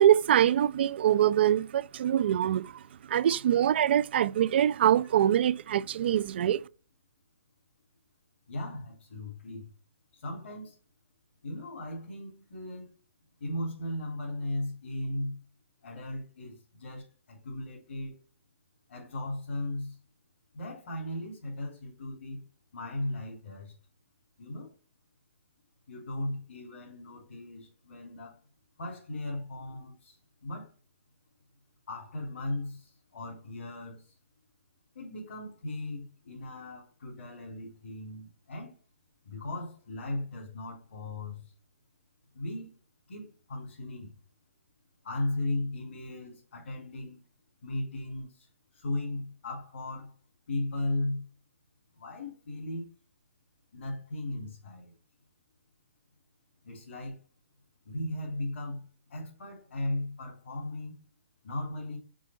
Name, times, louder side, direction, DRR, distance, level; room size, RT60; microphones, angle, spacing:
voice 1, 0.0-2.8 3.1-6.6, right 11 dB, 55° right, 0.4 m, -24 dB
voice 2, 8.5-9.7 10.1-10.7 11.4-12.9 13.4-15.4 15.8-18.1 18.9-20.0 20.5-22.4 22.7-23.7 24.4-24.7 25.9-28.4 28.8-30.7 31.9-34.1 34.9-38.7 39.2-41.5 42.3-42.7 43.1-44.1 45.0-47.2 47.6-48.5 48.7-50.1 50.5-51.2 52.0-52.9 53.7-54.9 56.6-57.2 57.8-58.8 59.1-60.9 61.4-62.0, left 1 dB, 70° left, 3.2 m, -37 dB
6.2 x 5.3 x 4.4 m
hypercardioid pair, 135°, 7 cm